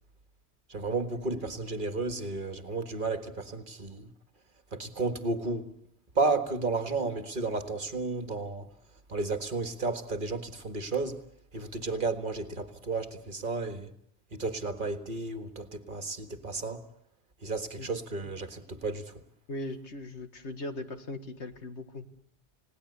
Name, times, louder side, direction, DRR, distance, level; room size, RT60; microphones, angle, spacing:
voice 1, 0.7-4.1 4.7-5.7 6.2-8.7 9.1-11.2 11.5-13.9 14.3-16.8 17.4-19.2, right 3 dB, 50° right, 1.8 m, -32 dB
voice 2, 19.5-22.1, left 1 dB, 90° left, 2.1 m, -39 dB
29.5 x 18.5 x 8.3 m
omnidirectional pair, 1.1 m